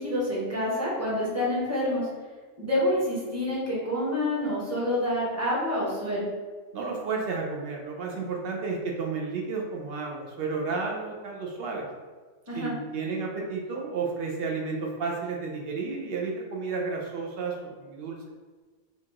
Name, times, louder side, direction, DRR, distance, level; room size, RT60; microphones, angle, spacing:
voice 1, 0.0-2.1 2.6-6.3 12.5-12.7, left 1 dB, 15° right, -6 dB, 0.9 m, -27 dB
voice 2, 6.7-11.9 12.5-18.2, right 4 dB, 65° right, -1 dB, 0.6 m, -32 dB
4.4 x 2.4 x 2.8 m, 1.4 s
omnidirectional pair, 1.4 m